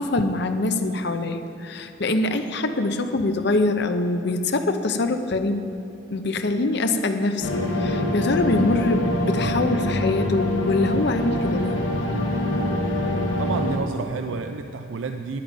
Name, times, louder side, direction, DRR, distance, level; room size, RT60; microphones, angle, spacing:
voice 1, 0.0-5.6 6.1-11.8, left 2 dB, 60° left, 8 dB, 0.7 m, -24 dB
sound 1, 7.4-13.8, left 1 dB, 80° left, 1.4 m, -24 dB
voice 2, 13.4-15.4, right 4 dB, 75° right, 7 dB, 0.4 m, -30 dB
11.5 x 9.1 x 5.2 m, 2.7 s
head